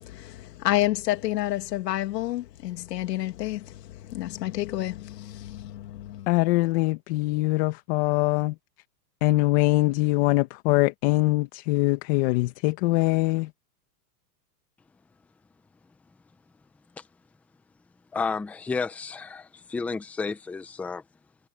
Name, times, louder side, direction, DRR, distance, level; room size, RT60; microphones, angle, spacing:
voice 1, 0.0-6.3, left 15 dB, 75° left, 2.6 m, -29 dB
voice 2, 6.3-8.5 9.2-13.5, left 21 dB, 40° left, 1.3 m, -23 dB
voice 3, 18.1-21.0, left 4 dB, 5° left, 0.6 m, -31 dB
supercardioid pair, 155°, 50 cm